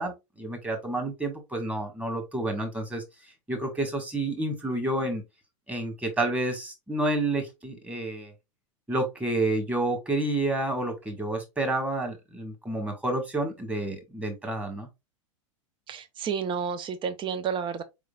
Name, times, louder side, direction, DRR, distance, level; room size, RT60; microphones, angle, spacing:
voice 1, 0.0-3.0 3.5-5.2 5.7-8.3 8.9-14.9, right 2 dB, 10° right, 1.8 m, -29 dB
voice 2, 15.9-17.8, right 6 dB, 30° right, 0.9 m, -31 dB
4.7 x 3.8 x 2.4 m
hypercardioid pair, 100°, 17 cm